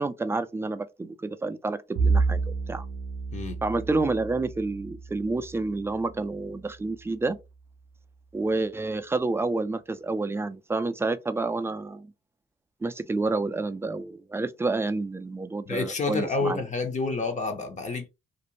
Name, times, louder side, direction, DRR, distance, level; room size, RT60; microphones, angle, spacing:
voice 1, 0.0-2.9 3.6-7.4 8.3-12.1 12.8-16.6, right 3 dB, 10° right, 0.3 m, -29 dB
Bowed string instrument, 1.9-6.5, right 4 dB, 75° right, 0.5 m, -30 dB
voice 2, 15.7-18.1, left 3 dB, 35° left, 0.6 m, -29 dB
2.5 x 2.0 x 2.9 m
cardioid pair, 90°, 20 cm